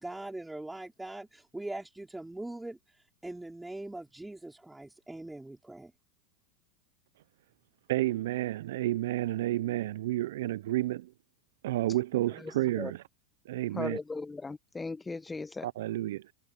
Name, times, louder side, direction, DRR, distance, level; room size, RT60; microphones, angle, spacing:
voice 1, 0.0-5.9, right 2 dB, 5° right, 5.0 m, -42 dB
voice 2, 7.9-11.1 11.6-13.0 13.5-14.0 15.6-16.3, right 15 dB, 75° right, 0.5 m, -30 dB
voice 3, 12.4-12.9 13.7-15.7, left 3 dB, 15° left, 1.0 m, -38 dB
hypercardioid pair, 105°, 0 cm